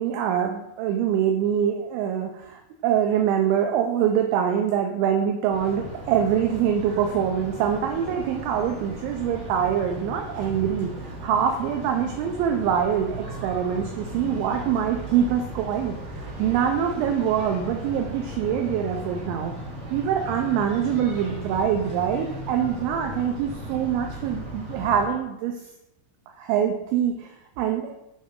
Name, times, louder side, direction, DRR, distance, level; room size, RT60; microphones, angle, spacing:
voice 1, 0.0-19.5 19.9-25.5 26.4-27.9, right 8 dB, 80° right, 4 dB, 2.8 m, -24 dB
sound 1, 5.5-25.1, equal, 60° right, 1.6 m, -37 dB
8.6 x 5.1 x 3.7 m, 0.87 s
omnidirectional pair, 5.7 m